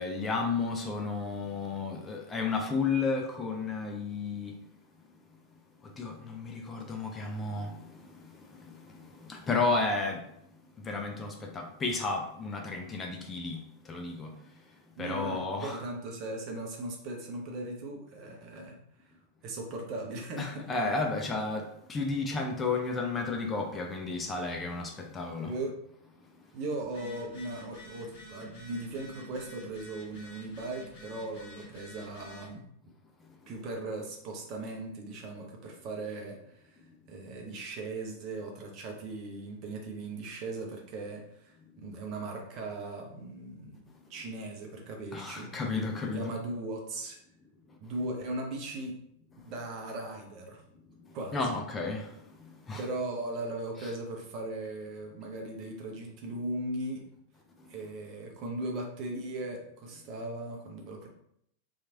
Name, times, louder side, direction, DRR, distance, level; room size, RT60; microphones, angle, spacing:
voice 1, 0.0-4.6 5.8-10.2 10.8-13.6 13.9-14.3 15.0-15.8 20.4-25.5 45.1-46.3 51.3-52.1 52.4-52.8, left 3 dB, 20° left, 1 dB, 0.4 m, -32 dB
voice 2, 15.0-18.8 19.0-19.1 19.4-20.6 25.4-25.7 26.5-32.6 33.5-36.8 37.1-45.5 46.0-47.2 47.8-48.9 49.4-50.6 51.1-51.6 52.8-57.0 57.7-61.1, right 2 dB, 40° right, 1 dB, 0.7 m, -38 dB
Telephone, 26.8-32.5, left 1 dB, 50° left, 0.9 m, -49 dB
2.9 x 2.4 x 2.8 m, 0.72 s
figure-of-eight pair, 90°, 0 cm